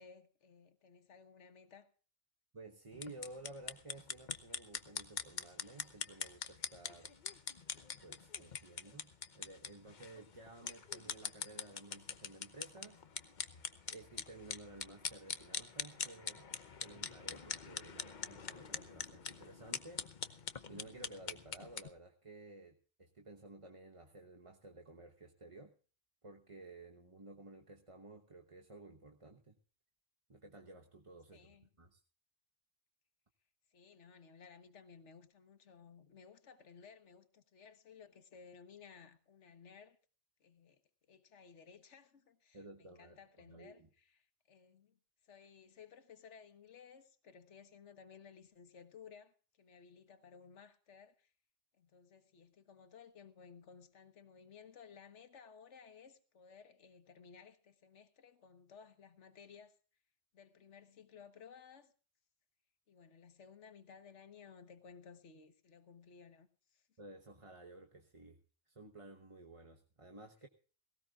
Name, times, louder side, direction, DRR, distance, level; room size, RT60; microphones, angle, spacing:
voice 1, 0.0-1.9 31.3-31.7 33.7-40.0 40.4-40.8 41.1-51.3 51.8-59.8 60.3-61.9 62.9-66.9, left 6 dB, 80° left, 1.5 m, -58 dB
voice 2, 2.5-7.1 8.0-13.0 13.9-16.5 16.8-25.7 26.2-29.6 30.3-32.0 42.5-43.2 43.5-43.9 67.0-68.4 68.7-70.5, right 2 dB, 30° right, 1.2 m, -54 dB
sound 1, 2.9-21.9, left 6 dB, 45° left, 0.9 m, -44 dB
18.5 x 18.0 x 2.4 m
omnidirectional pair, 1.2 m